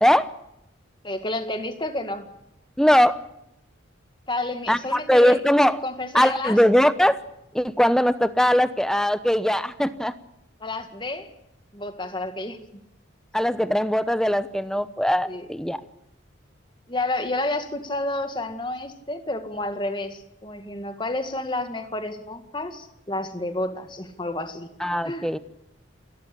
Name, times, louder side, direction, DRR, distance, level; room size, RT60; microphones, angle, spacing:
voice 1, 1.0-2.3 4.3-5.4 5.8-6.6 10.6-11.3 11.7-12.6 15.2-15.5 16.9-24.7 25.0-25.3, left 2 dB, 25° left, 8 dB, 1.9 m, -30 dB
voice 2, 2.8-3.2 4.7-5.8 6.1-7.2 7.5-10.1 13.3-15.8 24.8-25.4, equal, 5° left, 12 dB, 0.9 m, -20 dB
29.0 x 13.5 x 8.5 m, 0.85 s
head